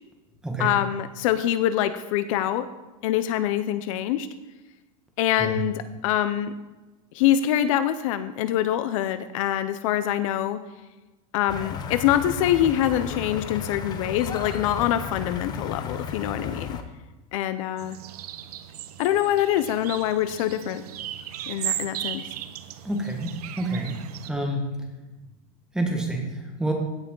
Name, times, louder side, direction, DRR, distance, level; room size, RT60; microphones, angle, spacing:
voice 1, 0.6-2.7 3.0-4.3 5.2-6.5 7.1-10.6 11.3-16.8 17.3-18.0 19.0-20.8 21.5-22.2, left 11 dB, 60° left, 12 dB, 0.6 m, -24 dB
sound 1, 11.5-16.8, left 7 dB, 20° left, 0.6 m, -34 dB
sound 2, 17.8-24.3, right 12 dB, 90° right, 0.8 m, -36 dB
voice 2, 22.8-24.7 25.7-26.7, right 1 dB, 5° right, 1 dB, 1.4 m, -28 dB
16.0 x 5.7 x 3.8 m, 1.1 s
supercardioid pair, 165°, 19 cm